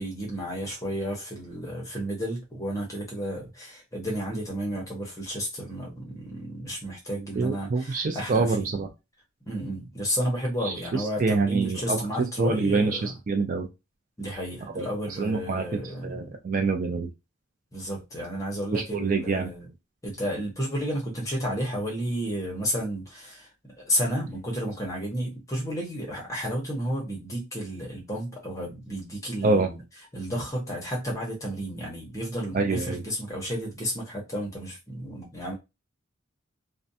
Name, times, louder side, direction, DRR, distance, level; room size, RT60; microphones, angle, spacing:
voice 1, 0.0-8.7 9.5-13.1 14.2-16.3 17.7-19.7 20.0-23.5 23.8-29.8 30.1-35.5, equal, 15° left, 0.8 m, -32 dB
voice 2, 7.4-8.9 10.6-13.7 14.8-14.9 15.2-15.6 16.0-17.1 18.7-19.5 29.4-29.7 32.5-33.0, right 3 dB, 40° right, 0.3 m, -26 dB
2.4 x 2.1 x 2.7 m
head